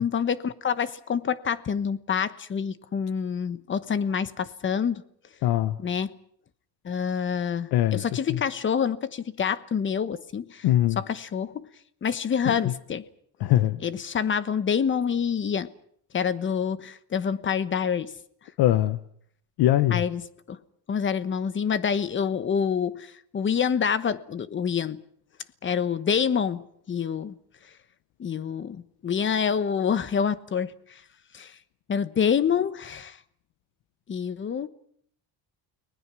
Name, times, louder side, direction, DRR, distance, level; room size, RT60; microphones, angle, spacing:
voice 1, 0.0-5.0 5.8-6.1 6.8-10.6 11.0-11.7 12.0-13.0 13.8-15.7 16.1-18.1 19.9-20.2 20.5-20.6 20.9-25.0 25.6-27.4 28.2-30.7 31.3-31.5 31.9-33.2 34.1-34.7, left 7 dB, 30° left, 1.1 m, -27 dB
voice 2, 5.4-5.8 7.7-8.4 10.6-11.0 12.4-12.7 13.4-13.8 18.6-19.0 19.6-20.0, left 13 dB, 80° left, 1.1 m, -22 dB
30.0 x 20.0 x 6.2 m
cardioid pair, 150°, 38 cm